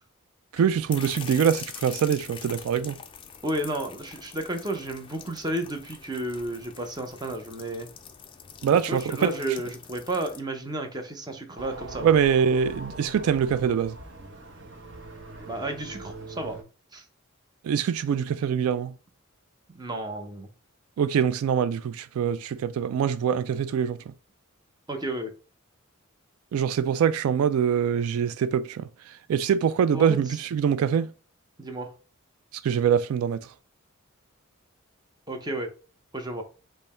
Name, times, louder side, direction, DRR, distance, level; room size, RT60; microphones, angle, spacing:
sound 1, 0.5-10.4, left 7 dB, 25° left, 0.4 m, -44 dB
voice 1, 0.5-3.0 8.6-9.3 12.0-14.0 17.6-18.9 21.0-24.1 26.5-31.1 32.6-33.5, right 7 dB, 75° right, 0.3 m, -24 dB
voice 2, 3.4-7.9 8.9-12.1 15.5-16.6 16.9-17.0 19.7-20.5 24.9-25.3 29.9-30.2 31.6-31.9 35.3-35.7 36.1-36.4, right 1 dB, 20° right, 0.7 m, -32 dB
sound 2, 11.6-16.6, right 2 dB, 55° right, 0.8 m, -42 dB
5.4 x 2.1 x 4.1 m
head